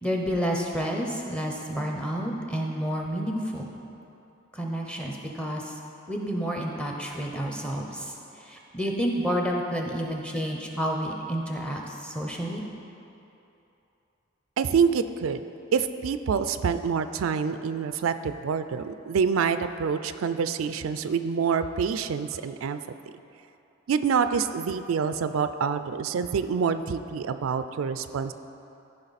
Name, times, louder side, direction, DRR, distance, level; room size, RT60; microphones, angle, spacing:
voice 1, 0.0-3.7 4.5-5.7 6.1-12.6, equal, 5° left, 0 dB, 0.8 m, -30 dB
voice 2, 14.6-15.4 15.7-22.8 23.9-28.3, right 6 dB, 90° right, 11 dB, 0.4 m, -26 dB
14.0 x 5.3 x 4.1 m, 2.9 s
head